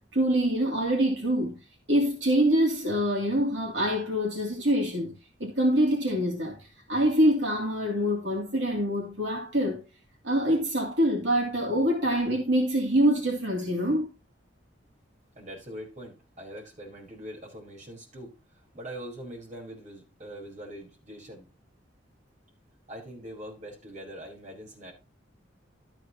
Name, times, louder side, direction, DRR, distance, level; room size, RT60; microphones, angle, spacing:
voice 1, 0.0-1.6 1.9-5.1 5.4-6.6 6.9-9.8 10.2-14.1, equal, 75° right, 2.8 m, -25 dB
voice 2, 15.3-21.5 22.9-24.9, equal, 40° right, 4.6 m, -43 dB
12.5 x 8.9 x 3.0 m
head